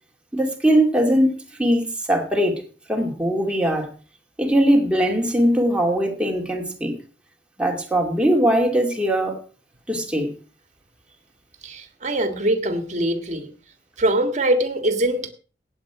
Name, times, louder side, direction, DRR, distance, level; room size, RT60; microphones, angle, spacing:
voice 1, 0.3-2.6 2.9-3.9 4.4-6.9 7.6-9.4 9.9-10.3, equal, 5° right, 2.4 m, -20 dB
voice 2, 11.6-13.5 14.0-15.3, right 1 dB, 45° right, 1.8 m, -22 dB
16.5 x 8.6 x 4.9 m
head